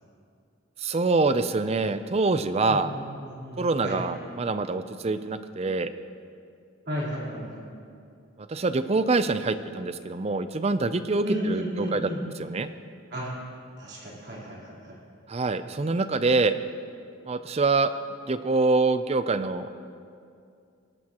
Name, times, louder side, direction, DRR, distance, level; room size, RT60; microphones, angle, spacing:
voice 1, 0.8-2.9 3.6-5.9 8.5-12.7 15.3-16.6 17.3-17.9 18.3-19.8, right 3 dB, 30° right, 11 dB, 0.4 m, -25 dB
voice 2, 2.7-4.0 6.9-7.7 11.2-12.2 13.1-13.3 13.8-15.0, equal, 50° right, -6 dB, 3.6 m, -33 dB
21.0 x 11.0 x 2.9 m, 2.4 s
head